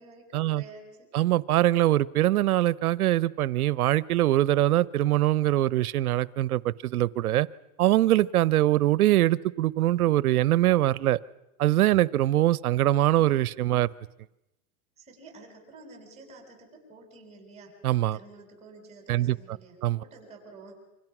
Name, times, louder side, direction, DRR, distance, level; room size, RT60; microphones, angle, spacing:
voice 1, 0.0-1.1 15.0-17.7 18.1-20.8, right 3 dB, 15° right, 3 dB, 7.2 m, -49 dB
voice 2, 1.1-7.5 7.8-11.2 11.6-13.9 17.8-18.2 19.1-19.4 19.8-20.0, right 14 dB, 80° right, 21 dB, 0.9 m, -23 dB
28.0 x 25.5 x 6.1 m, 0.91 s
supercardioid pair, 145°, 43 cm